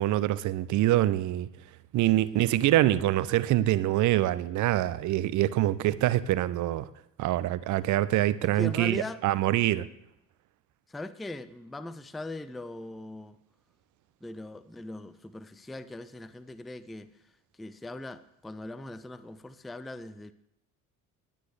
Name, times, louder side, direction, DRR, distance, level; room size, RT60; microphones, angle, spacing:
voice 1, 0.0-1.5 1.9-6.9 7.2-9.9, right 14 dB, 45° right, 0.6 m, -25 dB
voice 2, 8.4-9.2 10.9-13.4 14.2-17.1 17.6-20.3, left 2 dB, ahead, 0.3 m, -40 dB
20.5 x 9.5 x 3.3 m
figure-of-eight pair, 60°, 43 cm